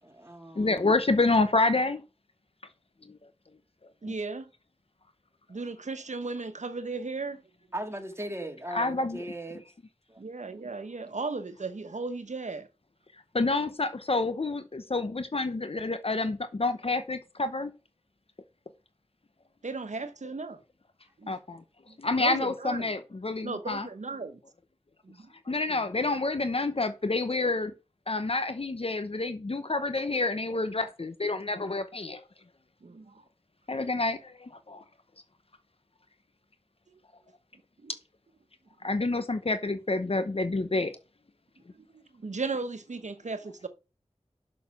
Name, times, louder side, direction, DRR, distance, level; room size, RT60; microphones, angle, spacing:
voice 1, 0.0-0.9 7.7-9.6 10.1-10.2, right 1 dB, 20° right, 2.2 m, -38 dB
voice 2, 0.6-2.0 3.1-3.2 8.7-9.2 13.3-17.7 21.3-21.6 22.0-23.9 25.5-27.7 28.1-32.2 33.7-34.8 38.8-40.9, left 3 dB, 55° left, 0.8 m, -28 dB
voice 3, 4.0-4.5 5.5-7.4 10.2-12.7 19.6-20.6 21.2-21.3 21.9-22.9 23.4-24.4 25.0-25.3 32.8-33.2 36.9-37.0 37.8-37.9 41.7-43.7, right 3 dB, 80° right, 1.0 m, -36 dB
6.7 x 6.4 x 7.0 m
wide cardioid pair, 50°, 12 cm